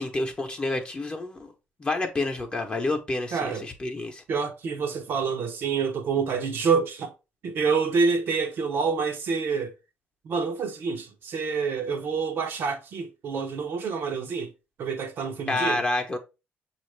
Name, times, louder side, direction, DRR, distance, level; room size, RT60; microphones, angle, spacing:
voice 1, 0.0-1.5 1.8-4.2 15.5-16.2, left 2 dB, 25° left, 0.8 m, -28 dB
voice 2, 3.3-3.7 4.3-7.1 7.4-9.7 10.2-14.5 14.8-15.8, right 5 dB, 60° right, 0.7 m, -27 dB
6.2 x 2.5 x 3.1 m
cardioid pair, 100°, 4 cm